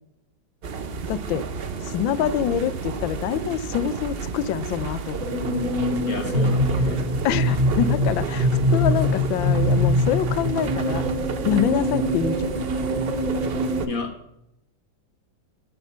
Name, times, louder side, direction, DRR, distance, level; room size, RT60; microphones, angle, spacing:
sound 1, 0.6-13.9, right 5 dB, 55° right, 0.6 m, -31 dB
voice 1, 1.1-1.4 1.9-5.3 7.2-11.0 11.4-12.6, left 9 dB, 85° left, 17 dB, 1.4 m, -25 dB
sound 2, 5.2-13.8, equal, 70° right, 2.8 m, -23 dB
voice 2, 6.1-7.0 13.9-14.1, left 4 dB, 50° left, 5 dB, 1.7 m, -31 dB
12.0 x 6.2 x 6.7 m, 0.82 s
omnidirectional pair, 2.1 m